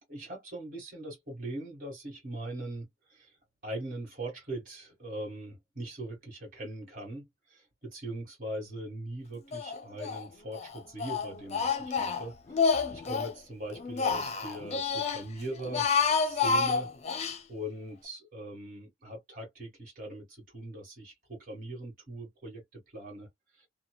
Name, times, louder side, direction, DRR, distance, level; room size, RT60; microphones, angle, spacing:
voice 1, 0.1-3.3 3.6-15.9 16.2-16.9 17.5-23.3 23.6-23.7, right 1 dB, 50° right, 1.6 m, -41 dB
Speech, 9.5-10.2 10.5-13.3 13.7-15.2 15.6-17.4, left 5 dB, 35° left, 0.5 m, -29 dB
2.8 x 2.1 x 2.2 m
head